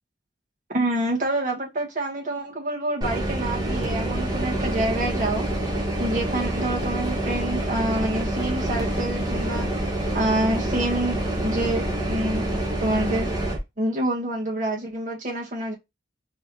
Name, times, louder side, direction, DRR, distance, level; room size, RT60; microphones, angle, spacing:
voice 1, 0.7-5.4 6.0-9.7 10.1-13.3 13.8-15.7, right 1 dB, 45° right, 1.7 m, -27 dB
sound 1, 3.0-13.6, right 1 dB, 20° right, 1.3 m, -27 dB
4.6 x 3.2 x 2.9 m
head